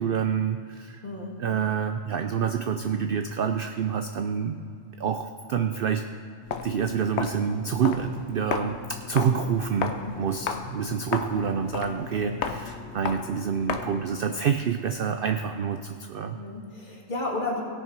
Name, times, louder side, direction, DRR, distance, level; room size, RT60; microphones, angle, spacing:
voice 1, 0.0-1.0 1.4-4.6 5.0-6.1 6.6-16.4, right 7 dB, 65° right, 7 dB, 0.5 m, -27 dB
voice 2, 1.0-1.4 9.8-10.1 12.1-12.4 16.3-17.6, left 2 dB, 35° left, -2 dB, 1.9 m, -33 dB
Walk footsteps, 6.4-14.1, left 6 dB, 60° left, 0.9 m, -34 dB
17.0 x 6.5 x 4.6 m, 2.4 s
omnidirectional pair, 1.4 m